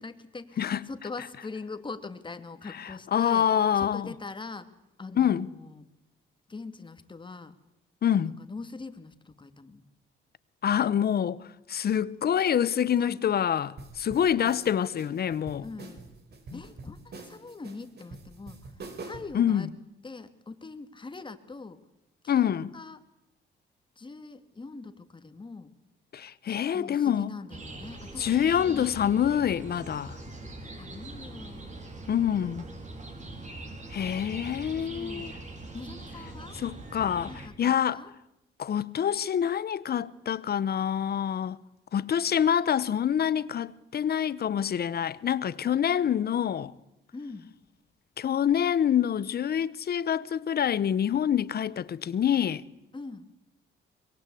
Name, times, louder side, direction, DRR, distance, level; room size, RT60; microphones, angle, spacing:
voice 1, 0.0-3.5 3.7-4.7 5.0-5.9 6.5-7.5 8.2-9.8 13.0-13.2 15.6-16.0 16.5-19.7 20.0-21.8 22.2-23.0 24.0-25.7 26.5-29.0 30.7-31.9 33.4-33.8 34.8-35.4 35.7-36.6 37.3-38.1 47.1-47.5 52.9-53.3, left 3 dB, 25° left, 2.3 m, -42 dB
voice 2, 2.8-4.1 5.2-5.5 8.0-8.4 10.6-11.4 11.7-15.7 16.5-16.6 19.3-19.7 22.3-22.7 26.1-27.3 28.2-30.2 32.1-32.7 33.9-35.3 36.6-37.3 37.6-38.0 38.6-41.6 41.9-46.7 48.2-52.6, left 9 dB, 50° left, 1.0 m, -26 dB
sound 1, 13.8-19.4, right 3 dB, 55° right, 4.8 m, -45 dB
sound 2, 27.5-37.5, right 2 dB, 35° right, 4.8 m, -42 dB
24.0 x 22.5 x 8.5 m
cardioid pair, 90°, 20 cm